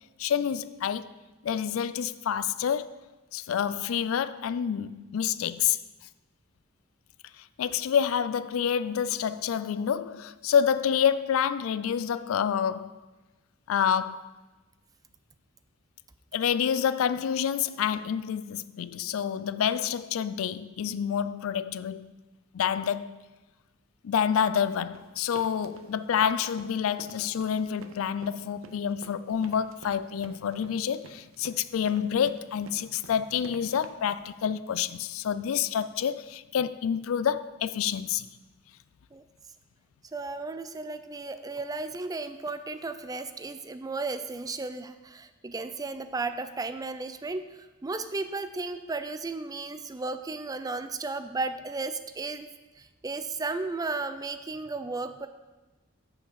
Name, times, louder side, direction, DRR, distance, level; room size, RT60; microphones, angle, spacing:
voice 1, 0.2-1.1 1.4-3.0 3.3-5.8 7.4-13.0 13.7-14.3 16.3-22.1 22.5-23.2 24.0-38.2, left 8 dB, 90° left, 0.4 m, -28 dB
sound 1, 24.9-33.9, right 3 dB, 75° right, 0.6 m, -49 dB
voice 2, 40.1-52.5 52.8-55.3, right 3 dB, 20° right, 0.4 m, -34 dB
7.2 x 5.8 x 6.3 m
head